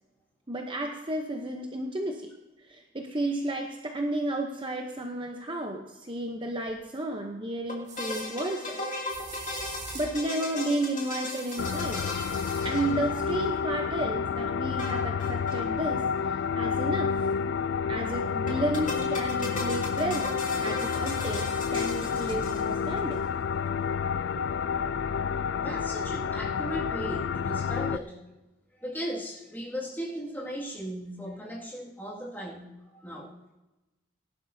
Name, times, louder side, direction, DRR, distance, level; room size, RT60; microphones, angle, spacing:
voice 1, 0.5-2.3 2.7-8.9 9.4-9.5 9.9-12.0 12.6-17.1 17.9-20.3 20.6-23.2 24.4-24.5, right 1 dB, 25° right, 2 dB, 0.8 m, -32 dB
sound 1, 6.7-6.8 7.9-8.3 9.1-10.2 11.3-12.7, right 4 dB, 60° right, 2.8 m, -43 dB
sound 2, 7.7-13.5 14.8-15.6 15.9-16.0 16.2-16.3 18.5-23.0, left 2 dB, 40° left, 2.5 m, -37 dB
sound 3, 11.6-28.0, left 6 dB, 60° left, 0.3 m, -29 dB
voice 2, 25.6-28.2 28.8-32.7 33.0-33.3, equal, 10° left, -4 dB, 2.1 m, -37 dB
18.5 x 11.5 x 2.7 m, 1.0 s
head